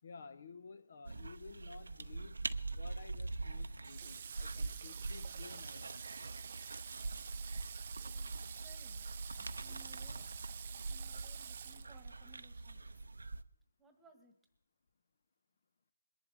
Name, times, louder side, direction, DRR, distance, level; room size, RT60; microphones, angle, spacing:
voice 1, 0.0-6.1, left 4 dB, 50° left, 12 dB, 0.7 m, -54 dB
sound 1, 1.0-13.4, right 3 dB, 85° right, 0.7 m, -43 dB
Water / Water tap faucet, 3.8-12.4, right 8 dB, 35° right, 0.5 m, -49 dB
voice 2, 8.1-9.0 9.4-12.8 13.8-14.3, right 4 dB, 5° right, 4 dB, 1.5 m, -64 dB
21.5 x 11.0 x 3.4 m, 0.67 s
hypercardioid pair, 165°, 0 cm